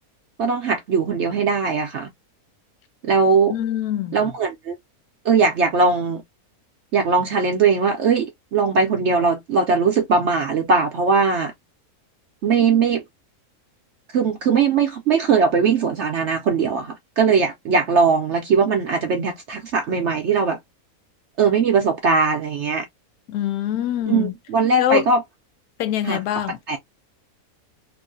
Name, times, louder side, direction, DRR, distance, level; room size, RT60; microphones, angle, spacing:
voice 1, 0.4-2.1 3.0-3.6 4.1-4.7 5.2-6.2 6.9-11.5 12.4-13.0 14.1-20.6 21.4-22.8 24.1-25.2 26.0-26.2 26.7-26.8, right 5 dB, 60° right, 0.8 m, -20 dB
voice 2, 3.5-4.2 23.3-24.3 24.8-25.1 25.8-26.6, left 11 dB, 80° left, 1.1 m, -24 dB
3.0 x 2.6 x 2.4 m
omnidirectional pair, 1.6 m